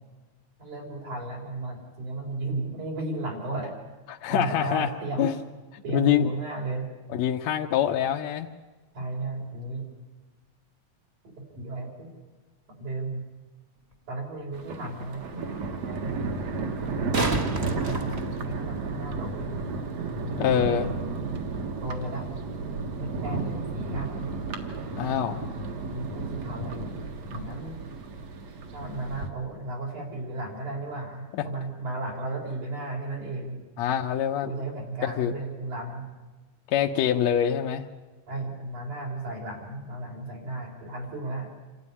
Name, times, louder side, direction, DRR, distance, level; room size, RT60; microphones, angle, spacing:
voice 1, 0.6-3.8 4.3-5.3 5.8-6.9 8.9-9.9 11.6-12.1 12.7-13.2 14.1-15.5 15.8-16.3 17.6-19.6 20.2-21.1 21.8-22.3 23.0-24.3 25.9-26.9 27.3-27.8 28.7-33.6 34.4-36.1 38.3-41.5, right 2 dB, 75° right, 0 dB, 5.7 m, -34 dB
voice 2, 4.1-4.9 5.2-5.3 5.7-6.3 7.1-8.5 20.4-20.9 25.0-25.4 31.3-31.5 33.8-34.5 35.0-35.3 36.7-37.9, left 10 dB, 70° left, 2 dB, 1.9 m, -25 dB
sound 1, 13.9-14.0 16.8-18.9 21.8-21.9, right 2 dB, 35° right, 1.1 m, -30 dB
Thunder, 14.5-29.3, right 3 dB, 60° right, 2.7 m, -33 dB
27.5 x 13.0 x 9.8 m, 1.3 s
omnidirectional pair, 3.5 m